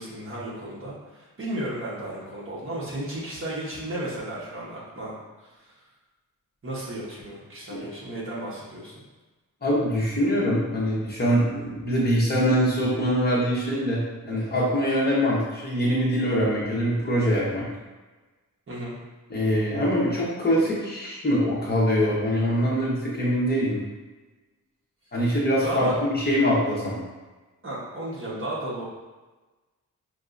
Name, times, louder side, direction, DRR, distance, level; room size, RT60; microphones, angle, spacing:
voice 1, 0.0-5.1 5.4-5.7 6.6-8.9 18.7-19.0 25.2-25.3 25.6-26.0 27.6-28.8, right 1 dB, 40° right, -7 dB, 1.1 m, -34 dB
voice 2, 9.6-17.7 19.3-23.8 25.1-27.0, equal, 30° left, -7 dB, 1.0 m, -23 dB
5.6 x 2.8 x 2.5 m, 1.2 s
wide cardioid pair, 180°, 33 cm